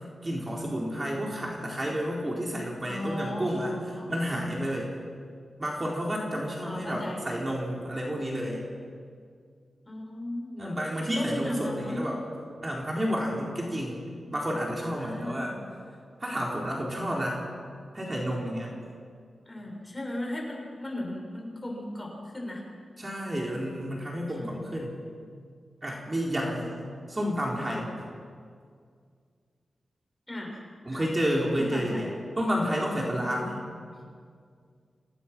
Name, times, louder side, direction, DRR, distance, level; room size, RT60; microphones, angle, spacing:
voice 1, 0.2-3.7 4.1-4.9 5.6-8.6 10.6-12.2 12.6-14.0 14.3-15.5 16.2-17.4 17.9-18.7 23.0-24.9 25.8-26.7 27.1-28.1 30.9-32.1 32.4-33.6, equal, 25° right, -2 dB, 4.1 m, -30 dB
voice 2, 2.9-4.5 6.6-7.3 9.9-10.9 11.1-12.2 15.0-15.7 19.4-22.6 23.4-23.6 24.3-24.5 30.3-30.6 30.9-31.1 31.5-32.1, left 1 dB, 20° left, -1 dB, 6.8 m, -36 dB
28.0 x 17.5 x 6.1 m, 2.1 s
cardioid pair, 75°, 0 cm